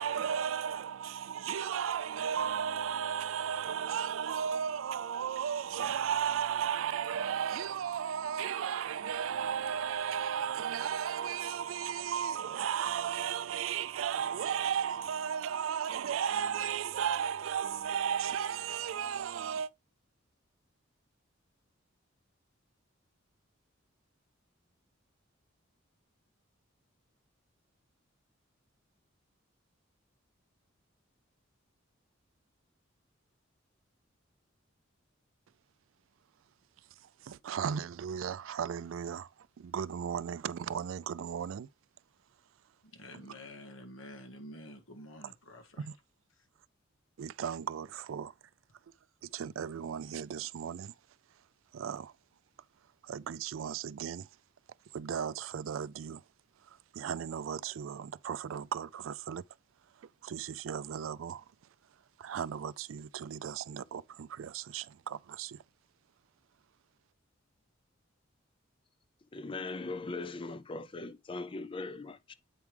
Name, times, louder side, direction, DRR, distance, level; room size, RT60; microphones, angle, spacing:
voice 1, 0.0-19.7 37.2-39.3 39.6-41.7 45.8-45.9 47.2-48.3 49.2-50.9 51.7-52.1 53.0-54.3 54.9-56.2 56.9-59.4 60.0-61.4 62.2-65.6, right 8 dB, 80° right, 0.4 m, -35 dB
voice 2, 42.8-45.9, left 1 dB, 90° left, 1.7 m, -49 dB
voice 3, 69.3-72.3, left 3 dB, 25° left, 0.5 m, -40 dB
8.3 x 4.7 x 3.3 m
head